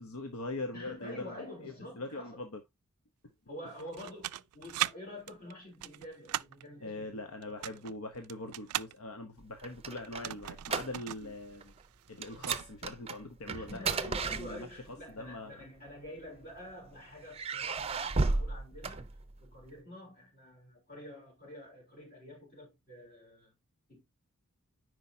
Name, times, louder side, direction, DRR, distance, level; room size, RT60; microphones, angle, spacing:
voice 1, 0.0-2.6 6.8-11.7 12.1-14.7 15.1-15.6, left 2 dB, 75° left, 1.0 m, -42 dB
voice 2, 0.7-2.4 3.5-7.2 7.5-7.9 11.2-11.3 13.6-19.1 19.4-23.5 23.9-24.0, left 1 dB, 40° left, 3.7 m, -47 dB
sound 1, 3.8-4.9 5.3-6.6 7.4-8.9 10.0-11.3 11.6-11.7 12.0-12.7, right 14 dB, 90° right, 0.3 m, -37 dB
sound 2, 9.4-11.3 11.6-11.8 12.2-15.0 15.9-16.7 17.3-19.6, right 4 dB, 25° right, 0.5 m, -34 dB
9.9 x 4.8 x 2.7 m
head